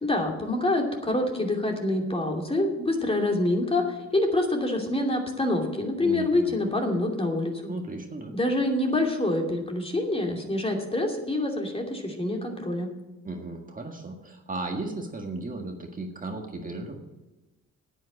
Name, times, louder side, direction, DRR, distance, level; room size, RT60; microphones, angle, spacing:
voice 1, 0.0-7.7 8.3-12.9, left 1 dB, 20° left, 2 dB, 2.8 m, -26 dB
voice 2, 6.0-6.5 7.7-8.3 13.2-17.0, right 2 dB, 25° right, 2 dB, 1.8 m, -35 dB
9.6 x 9.2 x 8.7 m, 1.1 s
cardioid pair, 90°, 30 cm